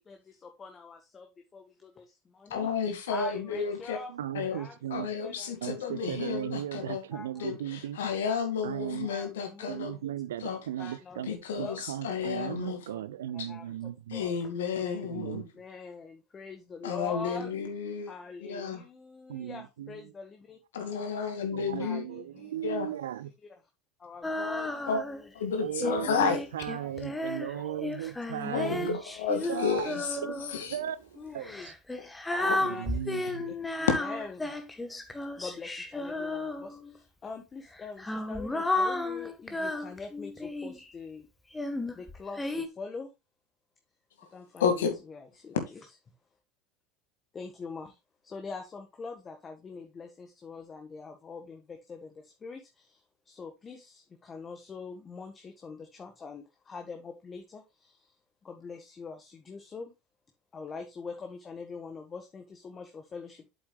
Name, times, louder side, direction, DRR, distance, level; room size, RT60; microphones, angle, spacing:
voice 1, 0.0-2.7 3.1-4.1 4.5-4.7 5.2-5.8 7.1-7.5 9.0-9.9 10.8-11.3 11.6-11.8 12.6-13.0 13.5-17.5 18.1-21.3 21.8-22.5 24.0-25.3 25.8-26.2 26.7-27.0 27.5-27.9 28.4-28.8 29.5-30.1 30.7-30.8 31.2-31.7 32.3-32.8 33.4-34.5 35.4-41.3 41.9-43.1 44.3-45.8 47.3-48.0 48.2-58.1 58.4-59.9 60.5-63.5, left 4 dB, 25° left, 1.5 m, -44 dB
voice 2, 2.5-4.0 4.3-4.6 4.9-7.0 7.4-10.0 10.4-10.6 11.3-12.8 13.4-13.5 14.1-15.4 16.8-18.1 18.4-18.8 20.7-22.1 22.6-22.9 24.9-25.0 25.3-26.4 28.4-30.2 30.5-30.8 32.3-32.6 33.9-34.0 44.6-45.0, left 6 dB, 75° left, 2.2 m, -31 dB
voice 3, 4.1-5.1 5.6-8.0 8.6-9.1 9.7-11.3 11.6-14.2 15.0-15.5 19.3-20.0 21.5-23.3 25.6-29.0 29.5-31.7 32.6-33.5, right 11 dB, 75° right, 0.6 m, -37 dB
Female singing, 24.2-25.3 25.8-30.6 31.4-37.0 37.7-40.9 41.5-42.7, left 2 dB, 10° left, 1.4 m, -33 dB
8.0 x 8.0 x 2.4 m
figure-of-eight pair, 75°, 0 cm